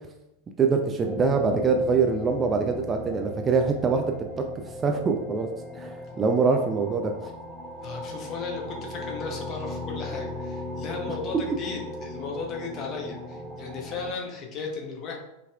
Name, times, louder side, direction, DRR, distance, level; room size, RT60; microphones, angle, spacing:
voice 1, 0.6-7.3, right 5 dB, 20° right, 4 dB, 0.4 m, -24 dB
sound 1, 1.0-14.1, left 2 dB, 5° right, 0.8 m, -37 dB
voice 2, 7.8-15.2, left 4 dB, 35° left, 0 dB, 0.9 m, -35 dB
5.2 x 3.3 x 2.3 m, 0.89 s
figure-of-eight pair, 90°, 0 cm